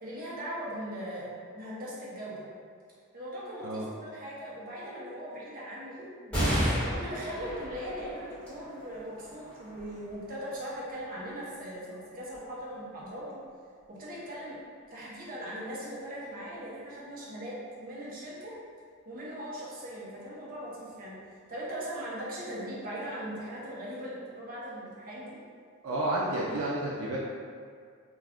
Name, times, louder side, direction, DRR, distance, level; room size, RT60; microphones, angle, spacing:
voice 1, 0.0-2.5 3.1-13.4 13.9-14.6 14.9-18.5 19.1-21.1 21.5-25.4, equal, 40° right, -7 dB, 0.7 m, -39 dB
sound 1, 6.3-13.2 13.8-13.9 15.0-15.6, equal, 5° left, 1.2 m, -35 dB
voice 2, 25.8-27.3, right 1 dB, 75° right, -5 dB, 0.4 m, -30 dB
2.3 x 2.3 x 3.4 m, 2.1 s
head